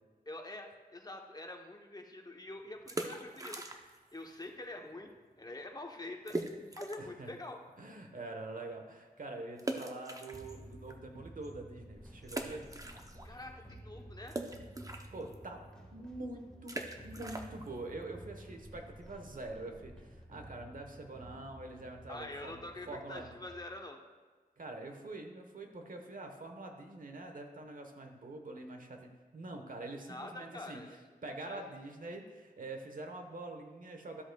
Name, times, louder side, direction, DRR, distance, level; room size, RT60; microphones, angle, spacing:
voice 1, 0.3-3.6 4.1-5.1 5.4-6.4 6.8-7.6 13.2-14.4 22.1-24.0 30.1-31.0 31.5-31.6, left 2 dB, 25° left, 3 dB, 0.9 m, -45 dB
sound 1, 2.7-4.1 4.4-4.5 5.1-5.2 5.4-5.5 6.3-7.2 7.7-7.8 9.6-10.9 11.4-11.5 12.2-13.4 13.7-19.2, right 2 dB, 20° right, 0.7 m, -42 dB
voice 2, 7.0-7.3 7.8-12.7 15.1-15.6 15.9-16.8 17.0-22.6 22.9-23.3 24.6-30.8 31.2-34.2, right 2 dB, 60° right, 4 dB, 1.1 m, -45 dB
sound 2, 10.3-23.6, right 1 dB, 5° left, 1.5 m, -53 dB
12.5 x 7.8 x 2.3 m, 1.4 s
wide cardioid pair, 85°, 15 cm